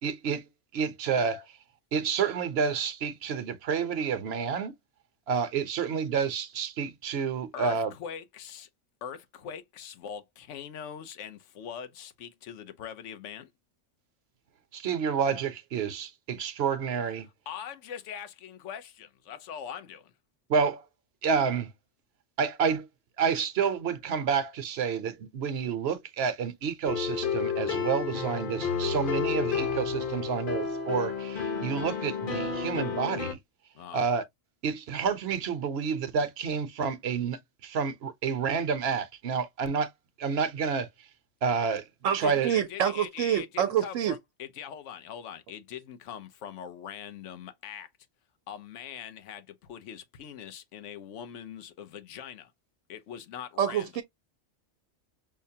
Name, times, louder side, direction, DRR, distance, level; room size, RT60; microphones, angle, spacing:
voice 1, 0.0-1.6 1.9-4.7 5.3-7.9 14.7-17.3 20.5-20.8 21.2-21.7 22.4-22.9 23.2-33.4 33.9-34.2 34.6-39.9 40.2-40.9 41.4-41.8 42.1-42.5, right 6 dB, 60° right, 0.9 m, -29 dB
voice 2, 7.5-8.7 9.0-13.5 17.5-20.1 32.5-32.7 33.7-34.0 42.1-47.9 48.5-52.5 52.9-53.9, left 8 dB, 75° left, 1.0 m, -42 dB
sound 1, 26.9-33.3, left 6 dB, 45° left, 1.0 m, -31 dB
voice 3, 42.0-44.1 53.6-54.0, right 9 dB, 85° right, 1.0 m, -27 dB
5.7 x 2.1 x 2.7 m
omnidirectional pair, 1.3 m